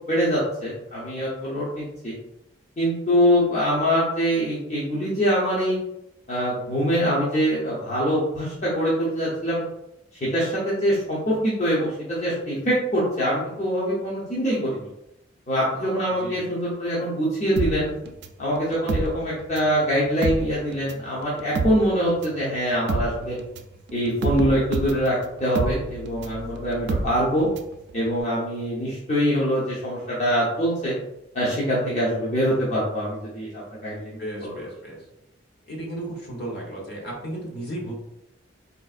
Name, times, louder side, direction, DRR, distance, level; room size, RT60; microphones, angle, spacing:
voice 1, 0.1-2.1 2.8-5.8 6.3-9.6 10.2-14.9 15.5-17.9 18.4-23.4 23.9-25.1 25.4-27.5 27.9-30.9 31.3-33.5 33.8-34.5, equal, 40° left, -8 dB, 0.7 m, -24 dB
voice 2, 16.2-16.5 34.2-35.0 35.7-37.9, right 1 dB, 60° left, -1 dB, 1.0 m, -34 dB
sound 1, 17.6-19.8 20.1-27.8 28.1-28.2, right 3 dB, 60° right, 0.3 m, -29 dB
3.9 x 2.4 x 2.4 m, 0.85 s
head